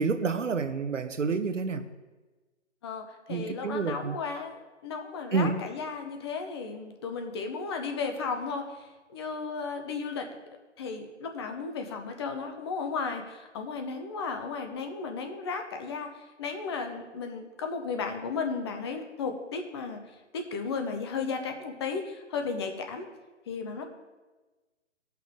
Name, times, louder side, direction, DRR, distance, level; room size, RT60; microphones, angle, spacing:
voice 1, 0.0-1.8 3.3-4.2 5.3-5.6, right 4 dB, 85° right, 9 dB, 0.9 m, -28 dB
voice 2, 2.8-10.3 10.8-20.0 20.3-23.1 23.5-23.8, left 5 dB, 20° left, 5 dB, 0.7 m, -34 dB
17.0 x 5.8 x 3.7 m, 1.2 s
hypercardioid pair, 150°, 36 cm